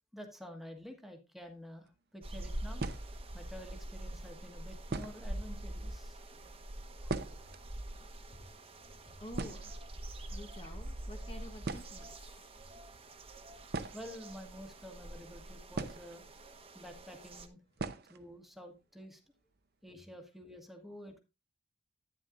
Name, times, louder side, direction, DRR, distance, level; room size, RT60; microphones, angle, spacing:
voice 1, 0.1-2.8 3.3-6.2 7.0-7.2 13.9-16.2 16.7-17.6 18.1-19.2 19.8-21.2, equal, ahead, 1.5 m, -49 dB
sound 1, 1.7-1.9 2.8-3.4 4.3-4.4 4.9-5.4 5.7-5.8 6.0-6.2 6.6-7.7 7.9-8.0 8.3-8.6 8.9-9.0 9.3-10.3 11.2-11.3 11.6-12.2 13.7-14.8 15.7-16.5 16.8-16.9 17.8-18.2 18.5-18.6 19.0-19.1 19.5-19.9, right 3 dB, 60° right, 0.7 m, -40 dB
sound 2, 2.2-17.5, right 1 dB, 30° right, 1.1 m, -45 dB
voice 2, 7.8-13.0 13.4-13.9 16.3-16.8, equal, 30° left, 1.1 m, -53 dB
10.5 x 9.8 x 2.5 m
head